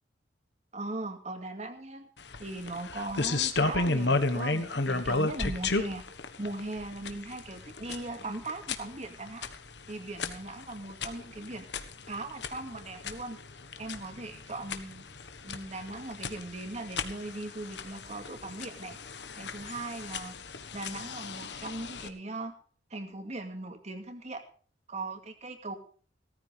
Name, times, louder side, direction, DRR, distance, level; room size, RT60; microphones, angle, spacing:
voice 1, 0.7-2.1 2.4-6.0 6.4-9.5 9.9-11.7 12.1-13.4 13.8-15.0 15.4-19.0 19.4-20.3 20.7-22.5 22.9-24.4 24.9-25.7, right 2 dB, 40° right, 6 dB, 2.3 m, -39 dB
sound 1, 2.2-22.1, left 3 dB, 65° left, 1.5 m, -34 dB
18.0 x 14.0 x 3.5 m, 0.42 s
head